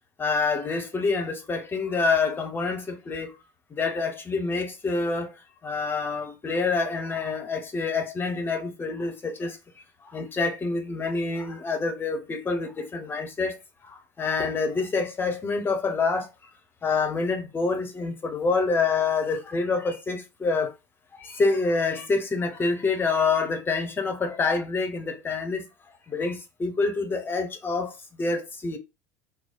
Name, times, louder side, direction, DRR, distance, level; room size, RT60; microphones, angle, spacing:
voice 1, 0.2-3.3 3.7-5.3 5.6-9.6 10.1-13.6 13.8-16.3 16.8-20.7 21.1-25.6 26.1-28.8, left 4 dB, 20° left, 0.8 m, -27 dB
3.1 x 2.0 x 4.0 m
figure-of-eight pair, 75°, 10 cm